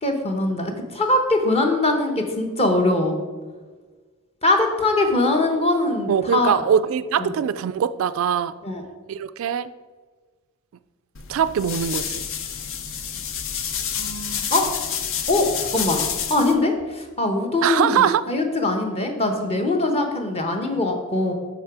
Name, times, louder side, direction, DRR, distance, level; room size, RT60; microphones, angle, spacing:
voice 1, 0.0-3.2 4.4-6.6 7.2-7.3 8.6-8.9 14.0-14.7 15.3-16.0 16.3-21.3, left 2 dB, 30° left, 4 dB, 1.0 m, -22 dB
voice 2, 6.1-8.5 9.1-9.7 11.3-12.2 17.6-18.2, right 8 dB, 65° right, 14 dB, 0.3 m, -22 dB
sound 1, 11.1-16.5, left 7 dB, 60° left, 0.7 m, -28 dB
8.0 x 6.0 x 4.8 m, 1.4 s
head